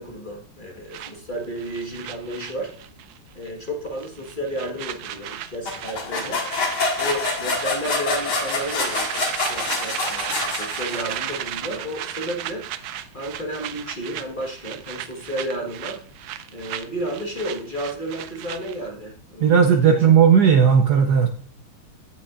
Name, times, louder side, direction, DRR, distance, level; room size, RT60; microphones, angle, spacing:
voice 1, 0.0-2.7 3.3-6.4 7.0-12.6 13.1-16.0 16.5-20.0, right 1 dB, 25° left, 0 dB, 1.3 m, -32 dB
sound 1, 0.9-3.2 3.4-3.7 4.0-18.9, right 11 dB, 85° right, 0.8 m, -35 dB
sound 2, 5.7-11.3, left 3 dB, 85° left, 2.8 m, -26 dB
voice 2, 19.4-21.3, right 7 dB, 65° right, 5 dB, 1.1 m, -15 dB
15.5 x 5.8 x 2.5 m, 0.44 s
omnidirectional pair, 2.3 m